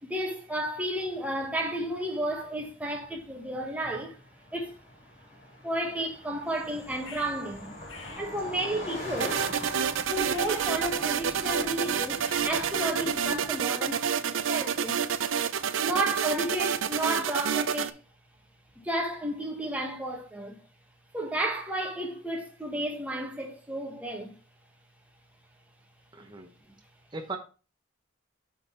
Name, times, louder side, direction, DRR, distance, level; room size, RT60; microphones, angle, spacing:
voice 1, 0.0-4.2 4.5-4.8 5.6-7.7 8.2-9.4 10.1-15.0 15.8-18.0 18.8-20.6 21.1-24.3 26.7-26.8, right 1 dB, 5° right, 1.2 m, -32 dB
Car passing by, 2.5-16.2, left 1 dB, 35° left, 2.9 m, -45 dB
sound 1, 6.5-13.7, left 3 dB, 80° left, 1.4 m, -47 dB
sound 2, 9.2-17.9, right 8 dB, 75° right, 0.4 m, -29 dB
voice 2, 26.1-26.5 27.1-27.4, right 3 dB, 20° right, 0.7 m, -37 dB
8.1 x 3.8 x 4.2 m
head